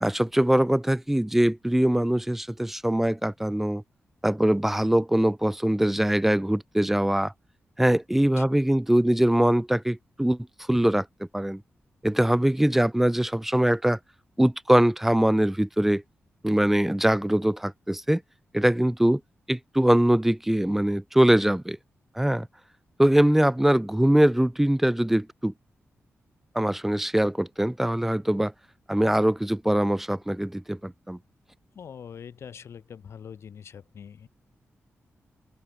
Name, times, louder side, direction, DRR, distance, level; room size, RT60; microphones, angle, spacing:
voice 1, 0.0-3.8 4.2-7.3 7.8-10.4 10.7-11.1 11.3-11.6 12.0-14.0 14.4-16.0 16.4-18.2 18.5-19.2 19.5-21.8 22.2-22.5 23.0-25.5 26.6-28.5 28.9-31.2, right 1 dB, 5° right, 0.5 m, -22 dB
voice 2, 31.8-34.3, left 7 dB, 65° left, 0.8 m, -43 dB
wide cardioid pair, 120°, 5 cm